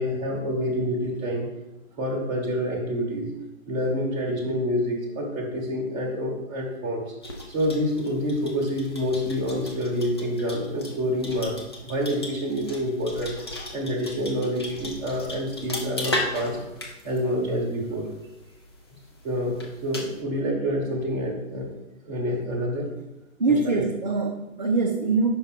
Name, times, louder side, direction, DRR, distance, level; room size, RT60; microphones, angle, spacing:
voice 1, 0.0-1.5 2.0-3.3 3.7-7.0 7.5-11.6 11.8-13.4 13.7-16.6 17.0-18.0 19.2-21.7 22.0-22.9 23.6-23.8, equal, 15° right, -2 dB, 1.0 m, -27 dB
sound 1, 7.2-20.2, left 2 dB, 20° left, 0.5 m, -37 dB
voice 2, 23.4-25.4, right 3 dB, 35° right, 2 dB, 0.4 m, -23 dB
5.4 x 5.3 x 4.5 m, 0.97 s
figure-of-eight pair, 130°, 40 cm